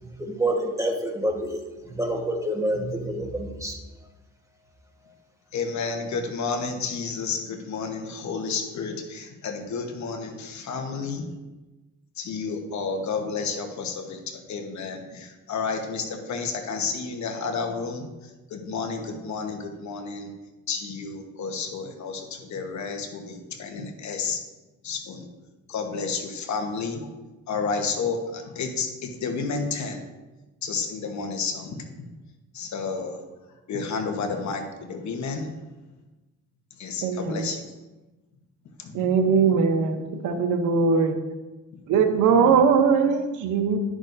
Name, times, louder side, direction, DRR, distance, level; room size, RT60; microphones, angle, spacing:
voice 1, 0.2-1.6 1.9-3.8, right 1 dB, 10° right, 2 dB, 1.4 m, -27 dB
voice 2, 5.5-11.3 12.2-20.3 20.7-24.4 24.8-25.3 25.7-27.1 27.5-30.0 30.6-32.0 32.5-33.2 33.7-35.5 36.8-37.6 38.8-39.3 41.7-41.8, left 5 dB, 70° left, 4 dB, 1.2 m, -31 dB
voice 3, 37.0-37.5 38.9-41.2 41.9-43.8, right 5 dB, 85° right, 7 dB, 0.9 m, -21 dB
11.0 x 6.2 x 2.7 m, 1.1 s
cardioid pair, 90°, 30 cm